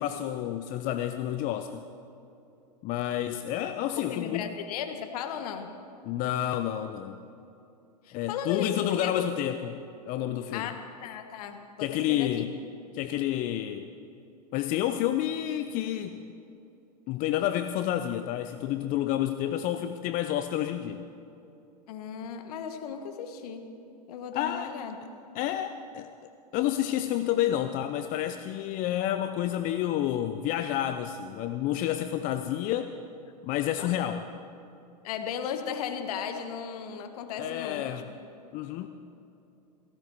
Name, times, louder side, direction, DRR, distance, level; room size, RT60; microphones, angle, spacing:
voice 1, 0.0-1.8 2.8-4.5 6.0-7.2 8.1-9.8 10.1-10.7 11.8-12.5 12.9-14.0 14.5-16.2 17.1-21.1 24.3-24.7 25.3-26.1 26.5-32.9 33.4-34.2 37.4-38.1 38.5-38.9, left 12 dB, 40° left, 9 dB, 0.6 m, -29 dB
voice 2, 4.0-5.7 8.0-9.2 10.5-10.7 11.0-12.4 21.9-23.7 24.1-25.0 33.8-33.9 35.0-37.9, left 8 dB, 65° left, 7 dB, 1.6 m, -36 dB
17.0 x 16.0 x 4.6 m, 2.7 s
hypercardioid pair, 100°, 21 cm